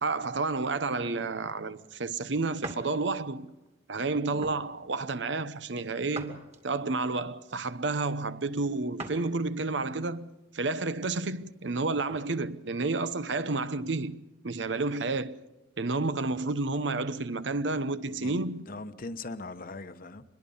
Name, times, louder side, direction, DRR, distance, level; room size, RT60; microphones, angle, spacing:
voice 1, 0.0-3.5 3.9-6.4 6.6-15.4 15.8-18.6, right 3 dB, 80° right, 0.9 m, -30 dB
sound 1, 2.6-2.9 3.5-3.7 4.4-4.7 6.1-6.9 9.0-9.3 9.8-9.9 11.6-12.3, right 2 dB, 35° right, 2.5 m, -42 dB
voice 2, 18.0-20.2, left 3 dB, 50° left, 1.0 m, -41 dB
25.0 x 21.5 x 5.5 m
head